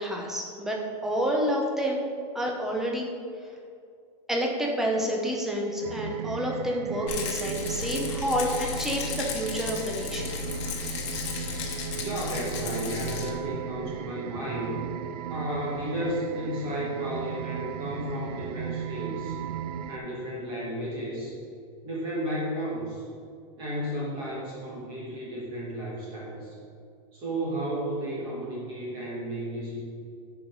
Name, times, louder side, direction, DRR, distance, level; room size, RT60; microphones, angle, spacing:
voice 1, 0.0-2.1 2.3-3.1 4.3-10.3, equal, ahead, -1 dB, 0.7 m, -29 dB
sound 1, 5.8-20.0, right 9 dB, 85° right, 0.4 m, -36 dB
Rattle, 7.1-13.3, left 6 dB, 45° left, 1.2 m, -34 dB
voice 2, 12.0-14.8 15.3-19.4 19.9-21.4 21.8-23.0 23.6-26.6 27.1-29.8, equal, 25° right, -6 dB, 1.7 m, -33 dB
9.9 x 4.9 x 5.3 m, 2.3 s
supercardioid pair, 180°, 20 cm